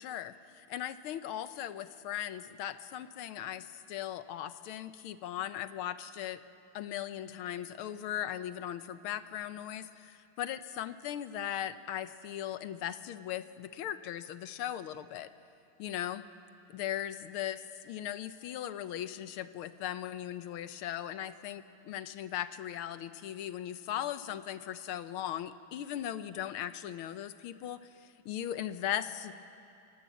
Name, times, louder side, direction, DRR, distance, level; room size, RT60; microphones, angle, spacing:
voice 1, 0.0-6.4 6.7-15.3 15.8-16.2 16.7-17.6 17.9-29.3, left 11 dB, 80° left, 12 dB, 1.6 m, -38 dB
27.0 x 18.5 x 8.3 m, 2.7 s
omnidirectional pair, 2.4 m